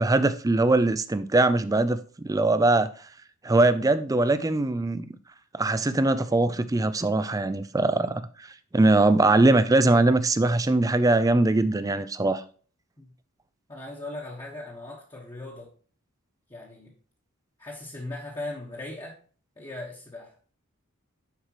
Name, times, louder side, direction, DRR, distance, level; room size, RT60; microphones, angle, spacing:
voice 1, 0.0-2.9 3.4-5.1 5.5-12.4, right 2 dB, 15° right, 0.4 m, -22 dB
voice 2, 13.7-15.7 16.5-16.9 17.6-19.2 19.6-20.5, left 2 dB, 20° left, 1.3 m, -39 dB
10.0 x 4.8 x 3.0 m
head